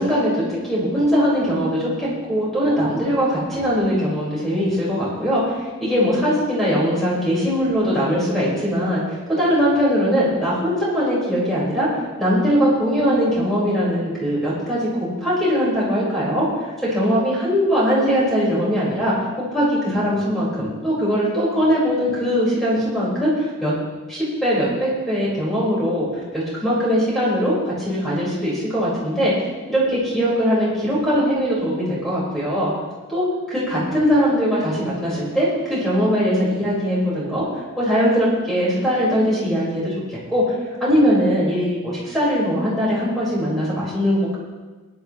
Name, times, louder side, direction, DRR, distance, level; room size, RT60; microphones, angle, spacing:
voice 1, 0.0-11.9 12.2-19.1 19.5-23.7 24.1-29.3 29.7-32.7 33.1-37.4 37.8-40.4 40.8-44.4, equal, ahead, -8 dB, 5.0 m, -21 dB
20.0 x 10.5 x 3.2 m, 1.3 s
head